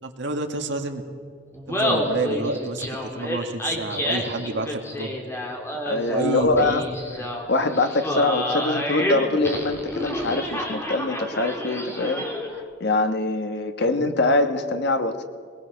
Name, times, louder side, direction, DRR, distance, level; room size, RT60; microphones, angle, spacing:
voice 1, 0.0-1.0 1.7-5.2 6.1-6.8 13.8-14.0, right 2 dB, 65° right, 4 dB, 2.0 m, -29 dB
Laughter, 1.5-12.6, equal, 15° left, 2.9 m, -29 dB
voice 2, 5.8-6.8 7.5-12.2 12.8-15.2, left 2 dB, 60° left, 8 dB, 1.4 m, -23 dB
21.5 x 20.0 x 6.5 m, 2.2 s
head